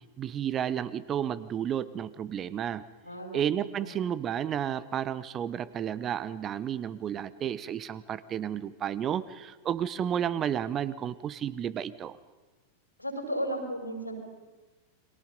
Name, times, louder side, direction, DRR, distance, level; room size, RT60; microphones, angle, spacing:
voice 1, 0.2-2.8 3.3-12.2, right 9 dB, 30° right, 18 dB, 0.8 m, -32 dB
voice 2, 3.0-3.5 3.8-4.1 13.0-14.2, equal, 90° left, 3 dB, 5.2 m, -34 dB
29.5 x 22.5 x 5.3 m, 1.2 s
figure-of-eight pair, 90°, 0 cm